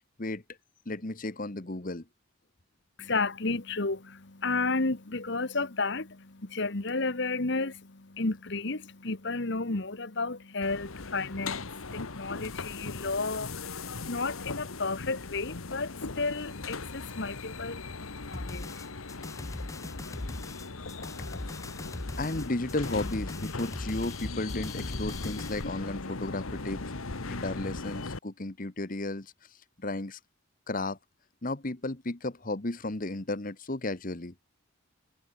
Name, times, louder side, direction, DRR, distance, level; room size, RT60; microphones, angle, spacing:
voice 1, 0.8-2.0 22.2-26.9 27.2-30.2 30.7-31.0 31.4-34.3, left 2 dB, 40° left, 1.3 m, -34 dB
voice 2, 3.0-21.9, left 3 dB, 55° left, 1.5 m, -33 dB
sound 1, 10.6-28.2, left 3 dB, 90° left, 1.5 m, -39 dB
sound 2, 18.3-25.6, left 2 dB, 15° left, 0.5 m, -40 dB
head